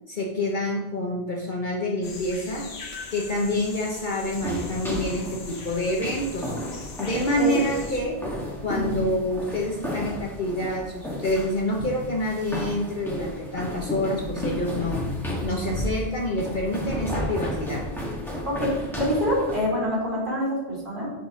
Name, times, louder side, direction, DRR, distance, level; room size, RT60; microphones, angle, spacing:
voice 1, 0.1-2.7 3.1-6.5 7.0-8.2 8.6-15.0 15.4-17.9, left 1 dB, 50° left, -2 dB, 1.1 m, -27 dB
sound 1, 2.0-8.0, left 3 dB, 70° left, 1.4 m, -41 dB
sound 2, 4.3-19.6, equal, ahead, 2.0 m, -33 dB
voice 2, 18.4-21.1, left 1 dB, 50° right, -6 dB, 3.6 m, -26 dB
6.4 x 5.4 x 5.7 m, 0.99 s
omnidirectional pair, 1.1 m